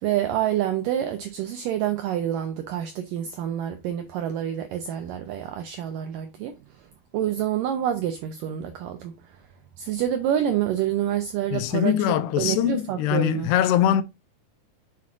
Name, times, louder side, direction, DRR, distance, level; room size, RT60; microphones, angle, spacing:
voice 1, 0.0-6.9 7.1-9.4 9.8-11.9 12.4-13.5, right 10 dB, 85° right, 1.9 m, -27 dB
voice 2, 11.5-14.0, left 11 dB, 85° left, 2.7 m, -22 dB
7.2 x 6.0 x 2.5 m
omnidirectional pair, 4.8 m